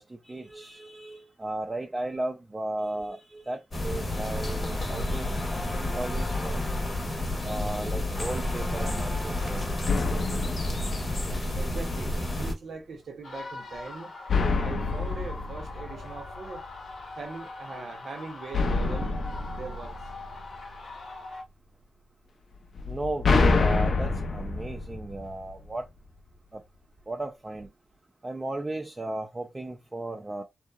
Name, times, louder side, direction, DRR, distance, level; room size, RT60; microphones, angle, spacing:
voice 1, 0.0-5.4 5.8-6.7 7.4-9.6 22.9-25.8 26.5-26.6 27.1-27.7 28.2-30.4, right 2 dB, 20° right, 0.4 m, -35 dB
sound 1, 3.7-12.5, left 1 dB, 40° left, 0.7 m, -30 dB
sound 2, 9.9-11.7 14.3-16.7 18.5-20.8 22.8-25.8, left 3 dB, 60° left, 0.3 m, -27 dB
voice 2, 11.6-14.1 14.5-16.6 17.2-19.1 19.6-20.0, right 4 dB, 75° right, 0.6 m, -41 dB
sound 3, 13.2-21.4, left 3 dB, 85° left, 0.8 m, -42 dB
2.7 x 2.0 x 2.3 m
wide cardioid pair, 135°, 0 cm